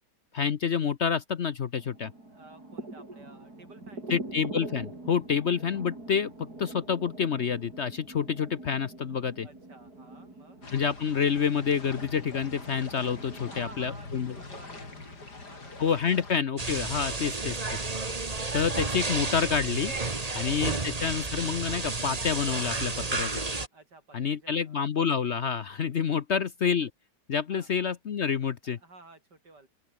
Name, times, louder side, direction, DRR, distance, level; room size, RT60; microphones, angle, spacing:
voice 1, 0.3-2.1 4.1-9.5 10.7-14.3 15.8-17.8 18.5-19.9 20.3-23.4 24.1-26.9 27.3-28.8, left 7 dB, 50° left, 1.0 m, -28 dB
sound 1, 1.8-13.8, right 2 dB, 65° right, 8.0 m, -44 dB
voice 2, 2.3-4.2 9.4-10.6 13.5-15.9 20.3-20.9 23.7-24.9 26.3-26.4 27.5-27.7 28.6-29.7, right 3 dB, 80° right, 5.8 m, -53 dB
sound 2, 10.6-16.4, left 3 dB, 75° left, 5.1 m, -44 dB
sound 3, 16.6-23.7, right 3 dB, 25° right, 1.7 m, -31 dB
open air
omnidirectional pair, 1.8 m